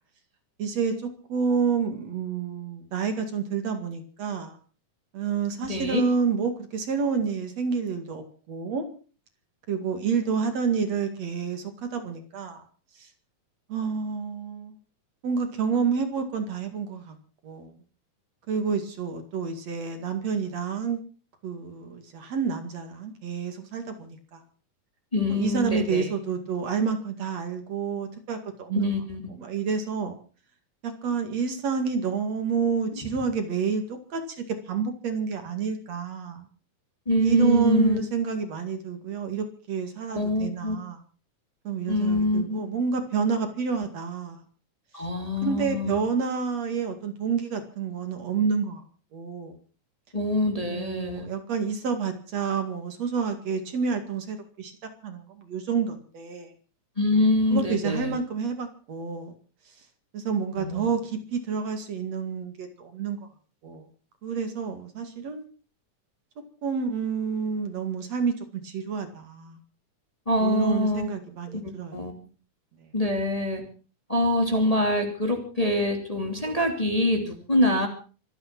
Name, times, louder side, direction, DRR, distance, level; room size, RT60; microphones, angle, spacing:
voice 1, 0.6-4.6 5.1-8.8 9.7-12.6 13.0-13.1 13.7-14.7 15.2-17.2 17.4-17.7 18.5-21.0 21.4-24.4 25.3-28.9 29.3-30.2 30.8-36.5 37.2-41.0 41.6-44.4 45.4-48.8 49.1-49.6 50.7-54.7 55.0-56.5 57.5-59.3 60.1-63.2 63.6-63.9 64.2-65.4 66.6-69.6 70.4-72.0 72.8-72.9, right 6 dB, 60° right, 7 dB, 3.3 m, -29 dB
voice 2, 5.7-6.0 25.1-26.0 28.7-29.2 37.1-38.0 40.1-40.8 41.9-42.6 44.9-46.0 50.1-51.3 57.0-58.2 60.6-60.9 70.3-71.1 71.9-72.1 72.9-73.6 74.1-77.9, left 1 dB, 10° left, 3 dB, 2.7 m, -24 dB
25.5 x 9.2 x 6.1 m, 0.39 s
omnidirectional pair, 3.5 m